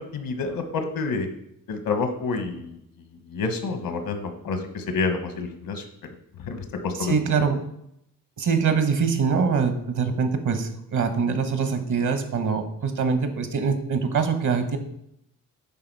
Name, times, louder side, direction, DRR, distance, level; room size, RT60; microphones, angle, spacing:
voice 1, 0.1-1.3 1.7-2.8 3.3-5.8 6.5-7.1, left 4 dB, 80° left, 6 dB, 1.3 m, -28 dB
voice 2, 6.9-7.6 8.4-14.8, right 5 dB, 60° right, 7 dB, 1.3 m, -24 dB
9.7 x 3.7 x 4.7 m, 0.76 s
cardioid pair, 80°, 34 cm